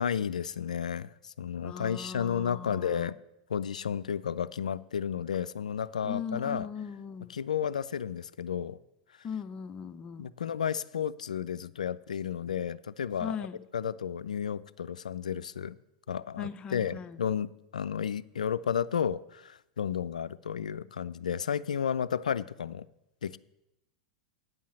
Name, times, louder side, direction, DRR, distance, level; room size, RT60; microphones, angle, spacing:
voice 1, 0.0-3.1 3.5-6.7 7.3-8.8 10.2-13.5 13.7-15.8 16.1-22.9 23.2-23.4, left 8 dB, 80° left, 17 dB, 0.3 m, -32 dB
voice 2, 1.6-3.1 6.0-7.3 9.2-10.3 13.2-13.6 16.4-17.2, left 6 dB, 25° left, 12 dB, 0.5 m, -39 dB
9.4 x 5.6 x 7.4 m, 0.86 s
hypercardioid pair, 95°, 4 cm